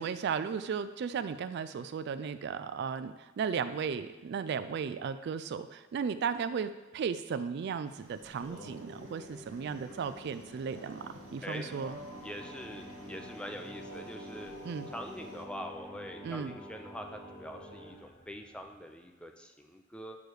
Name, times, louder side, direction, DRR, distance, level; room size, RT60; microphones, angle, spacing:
voice 1, 0.0-12.0 14.6-14.9 16.2-16.5, right 6 dB, 55° right, 12 dB, 0.3 m, -35 dB
sound 1, 7.8-15.5, equal, 85° right, 1.0 m, -56 dB
Singing, 8.2-18.0, equal, 65° left, 2.1 m, -48 dB
sound 2, 8.6-19.2, equal, 35° left, 1.2 m, -59 dB
voice 2, 12.2-14.5 14.9-20.2, equal, 5° left, 4 dB, 0.5 m, -44 dB
8.5 x 3.2 x 6.3 m, 1.1 s
head